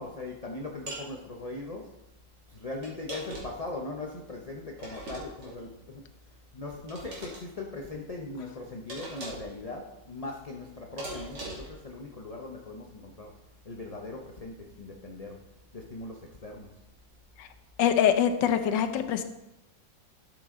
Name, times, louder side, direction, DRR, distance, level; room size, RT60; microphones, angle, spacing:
voice 1, 0.0-1.9 2.5-6.0 6.5-13.3 13.6-15.4 15.7-16.7, left 2 dB, 35° left, 0 dB, 0.6 m, -40 dB
sound 1, 0.9-1.1 2.8-3.7 4.8-5.6 6.9-7.4 8.9-9.5 11.0-11.8, right 1 dB, 85° right, 3.1 m, -40 dB
voice 2, 17.8-19.2, left 9 dB, 85° left, 9 dB, 1.5 m, -24 dB
12.5 x 6.9 x 3.8 m, 0.93 s
omnidirectional pair, 1.9 m